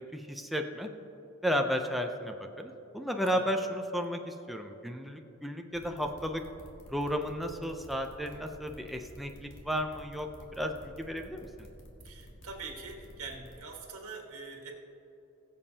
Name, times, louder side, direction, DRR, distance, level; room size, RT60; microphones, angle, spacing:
voice 1, 0.1-0.9 1.4-6.4 6.9-11.7, equal, ahead, 3 dB, 0.5 m, -33 dB
sound 1, 5.7-13.5, equal, 60° left, 1.7 m, -51 dB
voice 2, 12.0-14.7, right 4 dB, 80° right, 0 dB, 1.6 m, -44 dB
20.5 x 7.3 x 2.8 m, 3.0 s
head